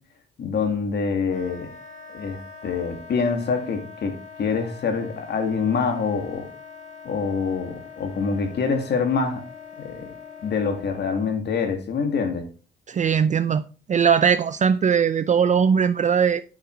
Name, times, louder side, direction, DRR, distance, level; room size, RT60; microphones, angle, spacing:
voice 1, 0.4-1.7 2.1-6.5 7.0-9.4 9.8-10.1 10.4-12.4, left 5 dB, 60° left, 2.2 m, -25 dB
Wind instrument woodwind instrument, 1.3-11.4, left 5 dB, 40° left, 2.0 m, -43 dB
voice 2, 12.9-16.4, right 7 dB, 35° right, 0.5 m, -20 dB
8.7 x 5.7 x 4.6 m
cardioid pair, 90°, 20 cm